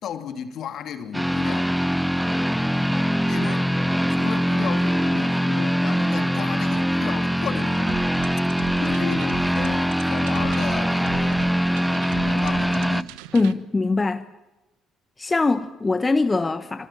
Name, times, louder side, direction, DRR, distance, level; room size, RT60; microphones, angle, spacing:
voice 1, 0.0-1.7 3.3-3.7 4.1-8.0 8.8-11.6 11.9-13.6, left 8 dB, 60° left, 2.7 m, -34 dB
sound 1, 1.1-13.0, equal, ahead, 0.9 m, -22 dB
sound 2, 7.9-13.5, right 13 dB, 75° right, 1.1 m, -39 dB
voice 2, 13.3-14.3 15.2-16.9, left 3 dB, 25° left, 1.3 m, -22 dB
26.5 x 26.0 x 7.6 m
hypercardioid pair, 50°, 0 cm